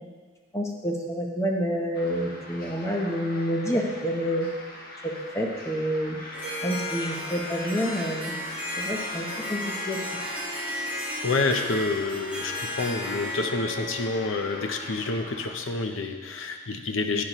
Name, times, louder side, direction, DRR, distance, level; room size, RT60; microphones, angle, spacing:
voice 1, 0.5-4.5 5.0-6.2 6.6-8.3 8.8-9.6 9.9-10.0, equal, 15° left, 0 dB, 0.9 m, -28 dB
sound 1, 1.9-15.5, left 1 dB, 45° left, 1.3 m, -42 dB
Harp, 6.3-15.1, left 1 dB, 10° right, 1.5 m, -34 dB
voice 2, 11.2-17.2, left 3 dB, 70° left, 5 dB, 0.7 m, -28 dB
10.5 x 9.3 x 3.0 m, 1.5 s
head